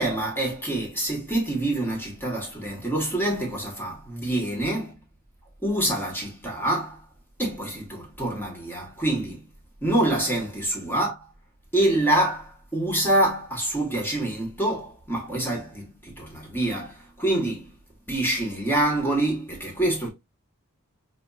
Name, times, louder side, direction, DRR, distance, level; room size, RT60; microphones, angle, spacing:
voice 1, 0.0-5.0 5.6-7.0 7.4-9.4 9.8-11.2 11.7-17.7 18.1-20.1, right 1 dB, 10° left, 1.1 m, -26 dB
4.9 x 2.2 x 2.2 m
head